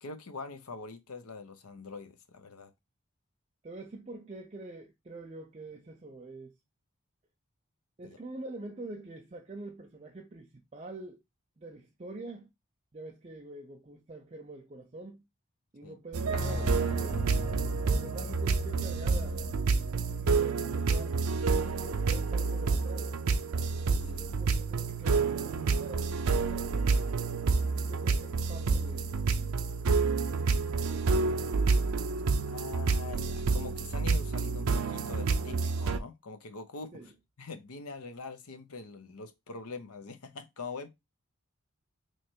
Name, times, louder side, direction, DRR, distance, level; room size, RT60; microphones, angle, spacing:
voice 1, 0.0-2.7 8.0-8.2 15.8-15.9 24.1-24.2 27.7-27.8 32.5-37.0 37.4-40.9, left 4 dB, 90° left, 0.8 m, -43 dB
voice 2, 3.6-6.5 8.0-11.2 11.6-12.5 12.9-15.2 15.7-17.2 17.9-21.2 21.8-23.2 24.0-26.8 27.6-29.2 30.9-31.5 36.9-37.1, right 2 dB, 30° right, 0.4 m, -45 dB
sound 1, 16.1-36.0, right 4 dB, 80° right, 0.5 m, -29 dB
sound 2, 16.3-22.0 22.3-22.4, left 1 dB, 35° left, 0.8 m, -41 dB
3.2 x 2.9 x 4.4 m
head